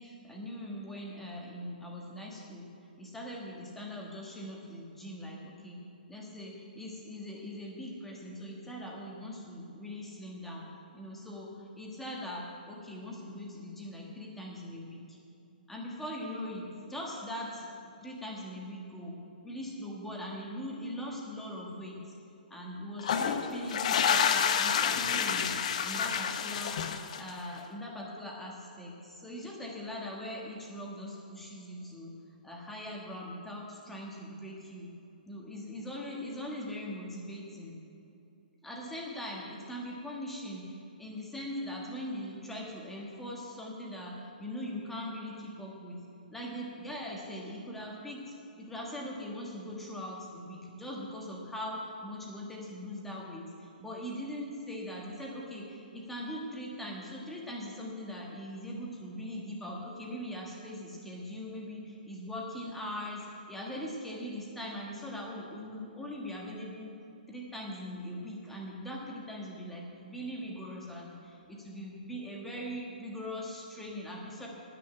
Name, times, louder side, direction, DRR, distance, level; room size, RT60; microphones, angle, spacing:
voice 1, 0.0-2.7 3.0-5.8 6.1-10.7 10.9-15.2 15.7-19.2 19.4-22.0 22.5-25.5 25.8-32.1 32.4-34.9 35.3-37.7 38.6-46.0 46.3-66.9 67.3-74.5, equal, 5° left, -2 dB, 1.4 m, -41 dB
sound 1, 23.0-27.5, left 7 dB, 45° left, 0.7 m, -29 dB
9.7 x 8.3 x 9.6 m, 2.7 s
hypercardioid pair, 170°, 5 cm